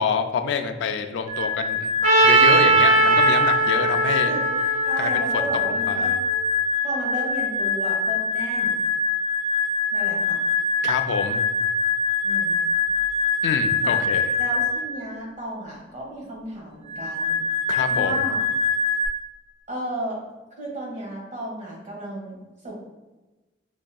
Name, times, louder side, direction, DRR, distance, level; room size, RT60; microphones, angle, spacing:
voice 1, 0.0-1.9 2.2-4.3 5.0-6.2 10.8-11.4 13.4-14.3 17.7-18.2, left 5 dB, 70° left, 8 dB, 0.3 m, -27 dB
sound 1, 1.3-15.0 16.9-19.1, left 4 dB, 20° right, 1.2 m, -24 dB
Trumpet, 2.0-6.1, right 3 dB, 65° right, 1.2 m, -20 dB
voice 2, 4.9-6.1 6.8-8.8 9.9-10.4 12.2-12.6 13.8-14.0 14.4-17.4 17.9-18.4 19.7-20.2 20.6-22.4 22.6-22.7, right 1 dB, 40° right, -3 dB, 1.0 m, -33 dB
4.7 x 2.6 x 2.2 m, 1.1 s
head